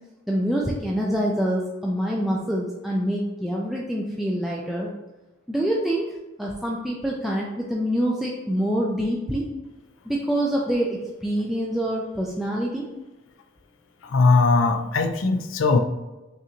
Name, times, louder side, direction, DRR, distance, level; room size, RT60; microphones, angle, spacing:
voice 1, 0.3-4.9 5.5-9.5 10.0-12.9, equal, ahead, -4 dB, 0.4 m, -26 dB
voice 2, 14.0-15.8, left 3 dB, 90° left, 7 dB, 0.5 m, -19 dB
5.6 x 2.5 x 2.9 m, 1.1 s
head